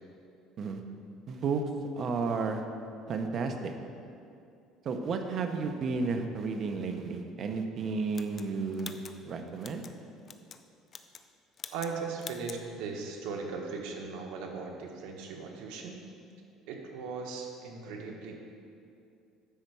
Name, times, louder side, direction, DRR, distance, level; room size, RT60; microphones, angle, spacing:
voice 1, 1.3-1.6 1.9-2.6 3.1-3.7 4.8-9.8, right 4 dB, 40° right, 5 dB, 0.8 m, -32 dB
Hole Punching a Paper, 8.1-9.9 10.3-10.6 10.9-11.3 11.6-11.9 12.2-12.6, left 6 dB, 30° left, 0.4 m, -45 dB
voice 2, 11.7-16.0 16.7-18.4, right 4 dB, 90° right, 1 dB, 1.3 m, -38 dB
10.5 x 4.4 x 6.8 m, 2.5 s
cardioid pair, 145°, 0 cm